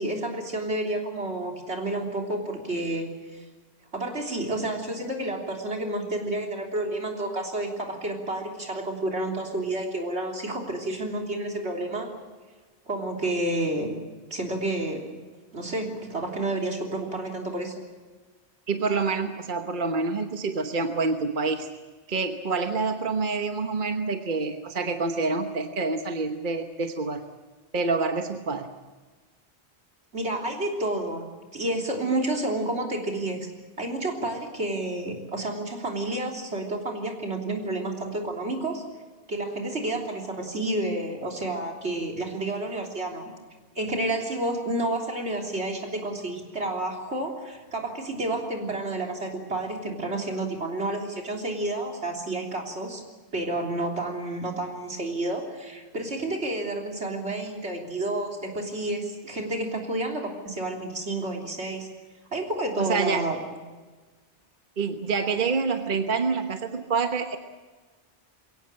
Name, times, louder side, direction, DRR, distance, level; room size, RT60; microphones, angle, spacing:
voice 1, 0.0-3.1 3.3-3.4 3.9-12.1 12.9-13.9 14.3-15.1 15.5-17.7 30.1-31.3 31.5-33.5 33.8-38.8 39.3-43.3 43.8-53.0 53.3-61.9 62.3-63.4, right 2 dB, 75° right, 1 dB, 3.7 m, -30 dB
voice 2, 18.7-21.7 22.1-27.2 27.7-28.7 62.8-63.2 64.8-67.4, right 4 dB, 50° right, 6 dB, 1.3 m, -27 dB
23.0 x 17.5 x 8.9 m, 1.3 s
omnidirectional pair, 1.1 m